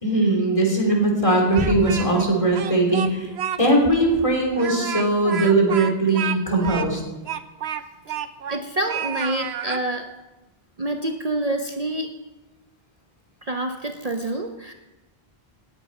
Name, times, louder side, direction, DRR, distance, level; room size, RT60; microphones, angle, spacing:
voice 1, 0.0-3.3 3.6-7.0, right 2 dB, 30° left, -1 dB, 3.2 m, -20 dB
Speech, 1.3-2.3 2.6-3.6 3.9-4.0 4.5-8.6 8.9-9.8, right 9 dB, 90° right, 1.0 m, -30 dB
voice 2, 8.5-10.1 10.8-12.1 13.4-14.7, right 1 dB, 40° right, 5 dB, 0.8 m, -27 dB
18.5 x 8.1 x 5.4 m, 1.1 s
omnidirectional pair, 1.1 m